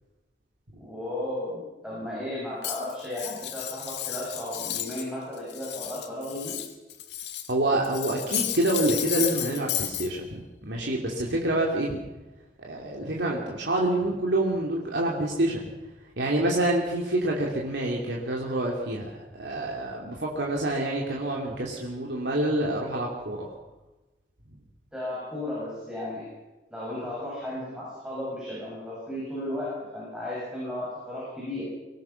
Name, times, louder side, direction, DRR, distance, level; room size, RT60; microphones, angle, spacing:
voice 1, 0.8-6.6 24.9-26.3 26.7-31.6, left 1 dB, 5° right, -7 dB, 7.9 m, -34 dB
Cutlery silverware, 2.6-5.1 5.4-7.5 7.8-10.1, left 11 dB, 85° left, 1.9 m, -33 dB
voice 2, 7.5-12.0 12.6-15.7 16.2-23.5, right 1 dB, 90° right, -2 dB, 3.0 m, -27 dB
24.5 x 18.0 x 6.0 m, 1.1 s
head